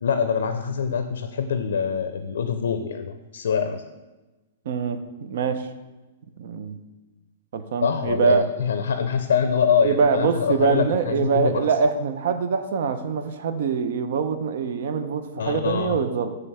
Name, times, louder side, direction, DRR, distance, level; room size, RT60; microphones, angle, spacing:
voice 1, 0.0-3.8 7.8-11.6 15.4-16.0, left 6 dB, 90° left, 8 dB, 0.4 m, -24 dB
voice 2, 4.7-5.7 6.4-6.8 7.5-8.4 9.8-16.4, right 5 dB, 60° right, 9 dB, 0.5 m, -24 dB
6.5 x 3.3 x 5.4 m, 1.1 s
hypercardioid pair, 165°, 0 cm